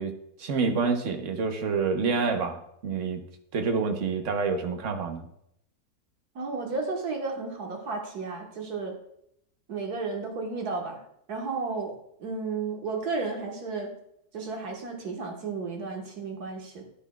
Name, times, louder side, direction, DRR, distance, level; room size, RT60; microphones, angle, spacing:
voice 1, 0.0-3.2 3.5-5.3, right 4 dB, 55° right, 5 dB, 1.2 m, -28 dB
voice 2, 6.4-9.0 9.7-11.0 11.3-14.0 14.3-16.8, right 4 dB, 75° right, 1 dB, 1.9 m, -33 dB
10.5 x 10.0 x 2.3 m, 0.74 s
omnidirectional pair, 1.7 m